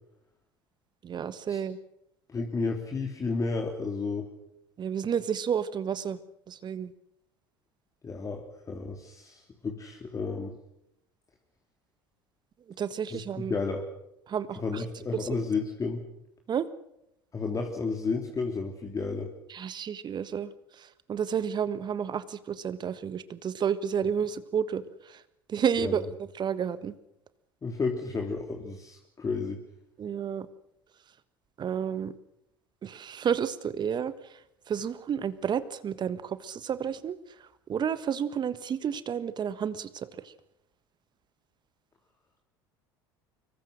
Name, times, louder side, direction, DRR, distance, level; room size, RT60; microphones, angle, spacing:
voice 1, 1.0-1.8 4.8-6.2 6.5-6.9 12.8-13.5 14.3-14.6 15.2-15.3 16.5-16.7 19.5-20.5 21.1-24.8 25.5-26.0 26.4-26.9 30.0-30.5 31.6-32.1 32.8-34.1 34.7-37.1 37.7-40.1, right 8 dB, 35° right, 14 dB, 1.5 m, -30 dB
voice 2, 2.3-4.3 8.0-10.5 13.1-13.8 14.6-16.0 17.3-19.3 25.8-26.0 27.6-29.6, left 4 dB, 25° left, 2 dB, 3.3 m, -32 dB
25.5 x 22.5 x 6.6 m, 0.82 s
hypercardioid pair, 70°, 12 cm